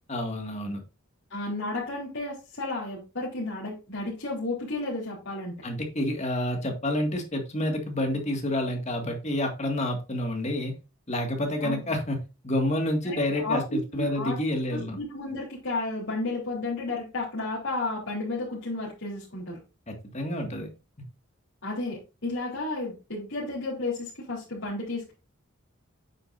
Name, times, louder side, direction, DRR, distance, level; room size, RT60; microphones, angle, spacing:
voice 1, 0.1-0.8 5.6-10.7 11.1-12.2 12.4-15.0 19.9-20.7, left 1 dB, 30° left, 3 dB, 2.0 m, -29 dB
voice 2, 1.3-5.6 11.6-11.9 13.0-14.4 14.7-19.6 21.6-25.1, left 2 dB, 55° left, -6 dB, 3.4 m, -32 dB
8.9 x 7.5 x 2.6 m, 0.29 s
head